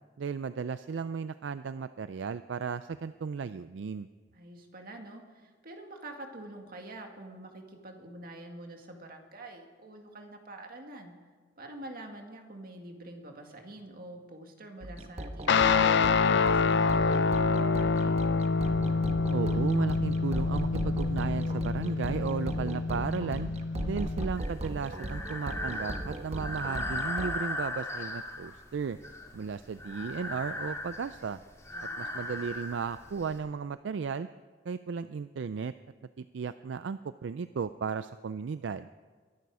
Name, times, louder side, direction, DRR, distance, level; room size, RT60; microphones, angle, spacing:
voice 1, 0.2-4.1 19.3-23.5 23.8-29.0 29.3-31.4 32.0-34.3 34.7-35.7 36.2-38.9, right 5 dB, 75° right, 13 dB, 0.4 m, -35 dB
voice 2, 4.3-11.2 11.6-18.1 31.7-32.1, right 2 dB, 50° right, 3 dB, 2.0 m, -46 dB
sound 1, 14.8-27.4, right 1 dB, 35° right, 1.1 m, -38 dB
Guitar, 15.5-24.2, left 4 dB, 65° left, 0.5 m, -27 dB
Breathing, 24.4-33.4, left 1 dB, 15° left, 2.1 m, -38 dB
22.5 x 11.0 x 4.9 m, 1.5 s
head